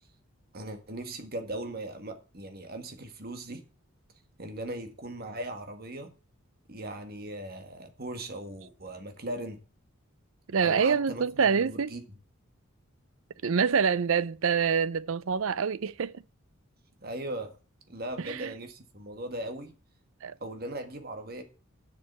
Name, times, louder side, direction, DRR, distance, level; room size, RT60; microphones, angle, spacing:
voice 1, 0.5-3.6 4.4-6.1 6.7-9.6 10.6-12.0 17.0-17.6 17.9-19.7 20.4-21.4, right 1 dB, 45° right, 1.8 m, -38 dB
voice 2, 10.5-12.0 13.4-16.2 18.2-18.5 20.2-20.3, right 6 dB, 70° right, 0.5 m, -26 dB
7.5 x 6.8 x 8.1 m
head